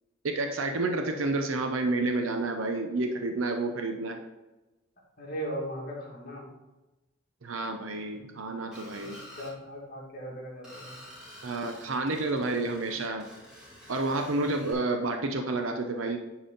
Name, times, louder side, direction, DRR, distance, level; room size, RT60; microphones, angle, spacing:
voice 1, 0.2-4.2 7.4-9.2 11.4-13.3 13.9-16.2, right 2 dB, 85° right, 5 dB, 0.7 m, -30 dB
voice 2, 5.2-6.5 9.0-11.0, right 1 dB, 45° left, -3 dB, 2.2 m, -38 dB
Screech, 8.7-9.5 10.6-14.7, left 1 dB, 5° right, 2.4 m, -49 dB
10.0 x 4.1 x 3.9 m, 1.1 s
head